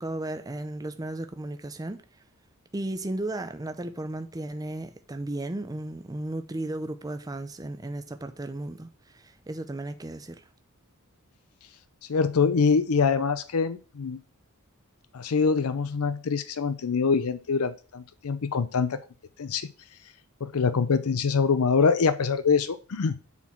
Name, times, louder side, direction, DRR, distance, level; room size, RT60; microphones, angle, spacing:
voice 1, 0.0-2.0 2.7-10.4, right 1 dB, 15° right, 0.5 m, -35 dB
voice 2, 12.1-14.2 15.1-19.0 19.4-19.7 20.4-23.2, left 5 dB, 75° left, 0.5 m, -24 dB
7.1 x 4.3 x 5.9 m
head